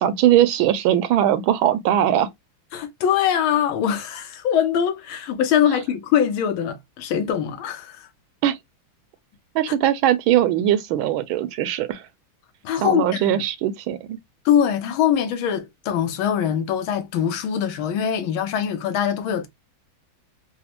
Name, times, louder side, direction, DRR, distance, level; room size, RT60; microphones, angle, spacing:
voice 1, 0.0-2.3 8.4-8.6 9.5-12.0 12.8-14.2, right 11 dB, 80° right, 1.3 m, -20 dB
voice 2, 2.7-8.1 12.6-13.4 14.4-19.5, left 9 dB, 80° left, 1.5 m, -22 dB
4.0 x 2.1 x 2.8 m
omnidirectional pair, 2.3 m